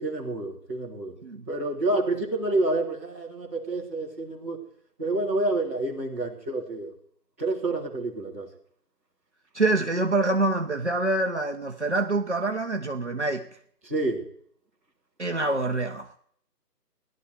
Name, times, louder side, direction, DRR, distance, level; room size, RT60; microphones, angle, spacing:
voice 1, 0.0-1.2 1.5-4.6 5.0-6.9 7.4-8.5 13.8-14.3, right 2 dB, 10° right, 1.5 m, -28 dB
voice 2, 9.5-13.5 15.2-16.2, right 2 dB, 45° right, 0.9 m, -26 dB
17.5 x 11.5 x 4.8 m
figure-of-eight pair, 160°, 49 cm